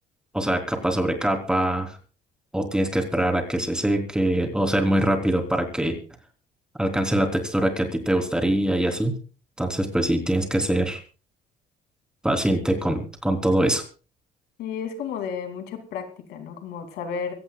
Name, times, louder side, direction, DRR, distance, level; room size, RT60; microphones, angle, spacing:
voice 1, 0.3-2.0 2.5-6.0 6.8-9.2 9.6-11.0 12.2-13.8, right 1 dB, 5° right, 4 dB, 3.6 m, -23 dB
voice 2, 14.6-17.3, left 6 dB, 85° left, 6 dB, 2.9 m, -32 dB
25.0 x 17.0 x 2.4 m, 0.36 s
cardioid pair, 110°, 17 cm